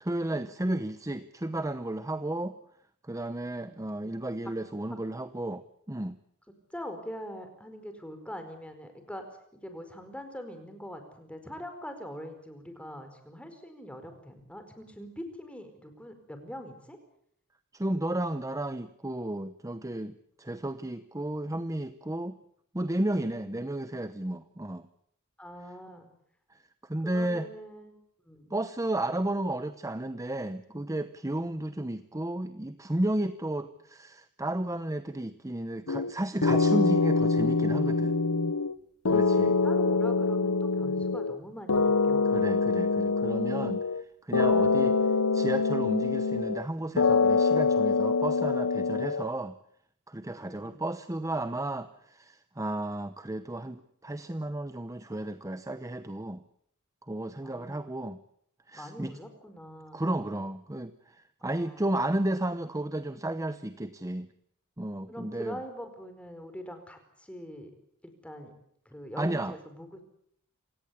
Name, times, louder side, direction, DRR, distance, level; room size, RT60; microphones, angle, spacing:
voice 1, 0.0-2.5 3.0-6.2 17.7-22.4 22.7-24.9 26.5-26.6 26.9-27.5 28.5-38.1 39.1-39.5 42.2-49.5 50.1-56.4 57.1-58.2 58.7-59.1 59.9-64.3 64.8-65.6 69.2-69.6, right 1 dB, 15° right, 11 dB, 0.9 m, -33 dB
voice 2, 3.4-3.9 4.9-5.0 6.7-9.2 9.5-17.0 23.3-23.5 25.4-26.1 27.0-28.0 28.2-28.5 31.4-31.6 39.3-42.3 44.6-45.0 50.3-50.8 57.4-57.8 58.7-60.0 61.4-61.8 65.1-67.7 68.0-68.5 68.8-70.0, equal, 5° left, 7 dB, 4.6 m, -43 dB
sound 1, 35.9-36.1 36.4-38.8 39.0-41.4 41.7-44.0 44.3-46.7 47.0-49.3, left 4 dB, 75° left, 0.9 m, -25 dB
28.0 x 17.5 x 8.4 m, 0.68 s
head